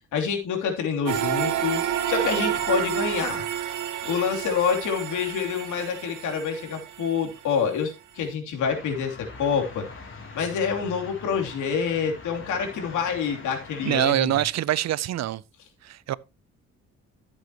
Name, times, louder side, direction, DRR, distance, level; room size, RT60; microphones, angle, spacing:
voice 1, 0.1-1.8 2.1-3.4 4.0-9.8 10.3-14.3, left 6 dB, 80° left, 3.1 m, -27 dB
sound 1, 1.1-7.3, right 10 dB, 80° right, 1.6 m, -29 dB
sound 2, 8.6-14.0, left 4 dB, 40° left, 4.1 m, -43 dB
voice 2, 13.8-15.4 15.8-16.1, right 13 dB, 60° right, 0.6 m, -24 dB
13.5 x 8.0 x 2.9 m
cardioid pair, 90°, 30 cm